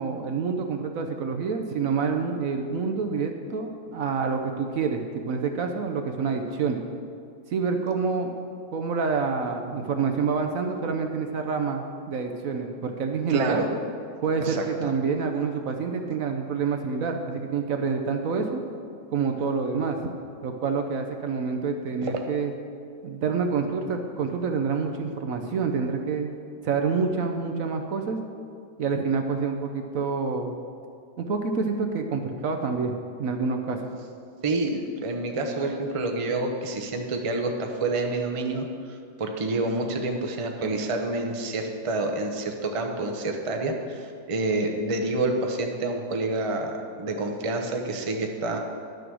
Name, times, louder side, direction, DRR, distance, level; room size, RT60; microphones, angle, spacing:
voice 1, 0.0-6.8 7.5-8.3 8.7-13.6 14.2-18.6 19.1-20.1 20.4-22.5 23.0-26.3 26.6-28.2 28.8-30.5 31.2-32.9 33.2-33.8, right 5 dB, 60° right, 4 dB, 1.0 m, -27 dB
voice 2, 13.3-13.7 14.4-14.6 34.4-48.6, right 2 dB, 30° right, 3 dB, 0.7 m, -28 dB
11.0 x 6.9 x 6.2 m, 2.4 s
omnidirectional pair, 1.8 m